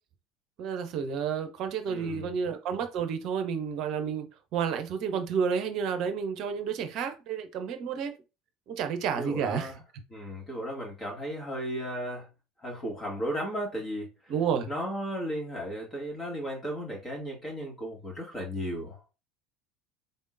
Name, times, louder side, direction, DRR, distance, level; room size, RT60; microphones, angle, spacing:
voice 1, 0.6-4.3 4.5-8.2 8.7-9.7 14.3-14.7, right 7 dB, 50° right, 0.7 m, -30 dB
voice 2, 1.9-2.3 9.2-9.8 10.1-12.3 12.6-14.1 14.7-19.0, equal, 25° left, 2.2 m, -35 dB
4.0 x 3.6 x 2.6 m
figure-of-eight pair, 70°, 0 cm